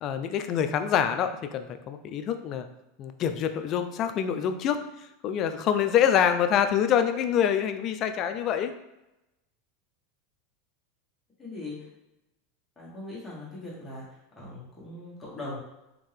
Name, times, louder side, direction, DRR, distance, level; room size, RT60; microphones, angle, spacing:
voice 1, 0.0-2.7 3.0-4.8 5.2-8.7, left 8 dB, 40° left, 8 dB, 0.3 m, -26 dB
voice 2, 11.4-11.8 12.8-14.0 14.4-15.6, left 2 dB, 15° left, -6 dB, 1.4 m, -40 dB
3.6 x 2.6 x 3.3 m, 0.92 s
supercardioid pair, 130°, 0 cm